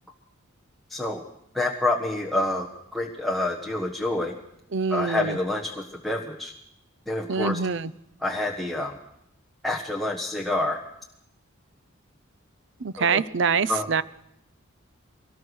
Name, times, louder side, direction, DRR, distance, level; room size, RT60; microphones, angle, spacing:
voice 1, 0.9-1.2 1.5-4.3 4.9-6.5 7.1-7.6 8.2-9.0 9.6-10.8 13.0-13.2 13.7-13.9, left 2 dB, ahead, -1 dB, 1.3 m, -27 dB
voice 2, 4.7-5.4 7.3-7.9 12.8-14.0, right 5 dB, 60° right, 17 dB, 0.7 m, -25 dB
22.5 x 18.5 x 6.4 m, 0.77 s
head